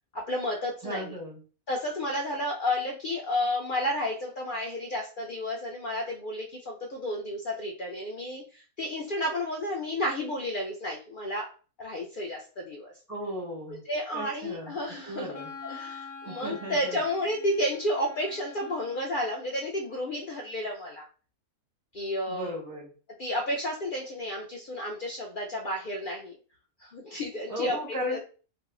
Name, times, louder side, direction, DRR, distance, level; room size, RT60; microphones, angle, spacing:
voice 1, 0.1-1.1 1.7-11.4 11.8-12.9 13.7-15.3 15.6-21.1 21.9-22.5 23.2-26.3 26.8-27.8 28.1-28.2, left 1 dB, 80° left, -1 dB, 0.4 m, -31 dB
voice 2, 0.8-1.4 13.1-13.8 14.1-14.8 15.1-15.5 16.3-17.0 22.3-22.9 27.5-28.2, left 1 dB, 20° right, -1 dB, 0.5 m, -35 dB
Wind instrument woodwind instrument, 14.6-19.4, left 4 dB, 55° left, 0.8 m, -45 dB
2.6 x 2.0 x 3.6 m, 0.38 s
omnidirectional pair, 1.5 m